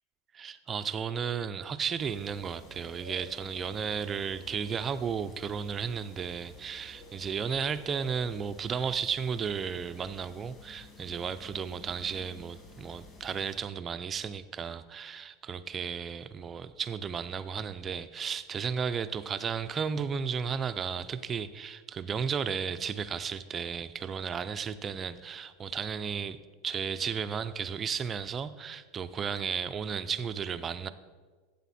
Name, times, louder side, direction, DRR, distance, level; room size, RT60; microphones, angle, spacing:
voice 1, 0.3-26.4 26.6-30.9, right 6 dB, 20° right, 11 dB, 0.4 m, -34 dB
sound 1, 2.0-13.6, left 1 dB, 25° left, 2.2 m, -51 dB
12.5 x 8.1 x 4.2 m, 1.5 s
supercardioid pair, 160°, 0 cm